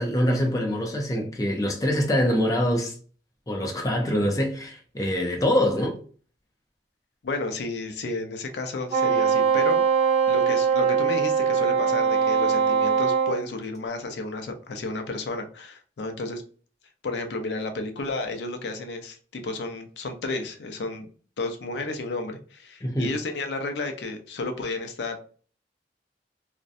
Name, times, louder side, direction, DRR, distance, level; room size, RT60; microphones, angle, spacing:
voice 1, 0.0-3.0 3.5-6.0 22.8-23.1, equal, 20° left, 0.4 m, -24 dB
voice 2, 7.2-9.8 10.3-16.4 17.0-21.1 21.4-25.2, left 3 dB, 75° left, 0.4 m, -32 dB
Wind instrument woodwind instrument, 8.9-13.4, right 6 dB, 20° right, 1.0 m, -21 dB
2.5 x 2.1 x 2.5 m
head